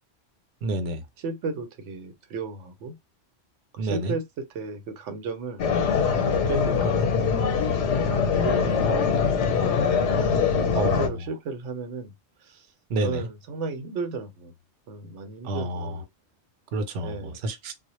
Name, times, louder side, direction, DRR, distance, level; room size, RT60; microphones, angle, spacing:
voice 1, 0.6-1.0 3.8-4.1 10.7-11.1 12.9-13.2 15.4-15.9 16.7-17.1 17.4-17.7, right 2 dB, 60° right, 0.7 m, -28 dB
voice 2, 1.2-3.0 3.7-5.6 5.9-7.3 8.0-9.5 10.7-12.1 12.4-12.7 13.0-14.5 14.9-16.1 17.0-17.4, right 4 dB, 85° right, 0.9 m, -34 dB
sound 1, 5.6-11.1, left 6 dB, 85° left, 0.9 m, -23 dB
2.1 x 2.0 x 2.9 m
omnidirectional pair, 1.2 m